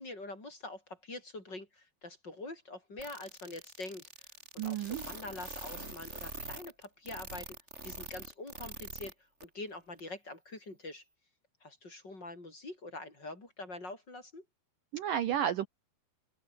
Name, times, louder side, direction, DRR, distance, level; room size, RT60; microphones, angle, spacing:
voice 1, 0.0-4.3 4.5-7.6 7.8-9.1 9.4-11.0 11.6-14.4, left 2 dB, 25° left, 6.1 m, -45 dB
sound 1, 3.0-9.1 9.4-9.5 10.0-10.1, right 2 dB, 15° right, 6.2 m, -44 dB
voice 2, 4.6-5.0 14.9-15.7, right 10 dB, 65° right, 2.6 m, -31 dB
open air
omnidirectional pair, 4.6 m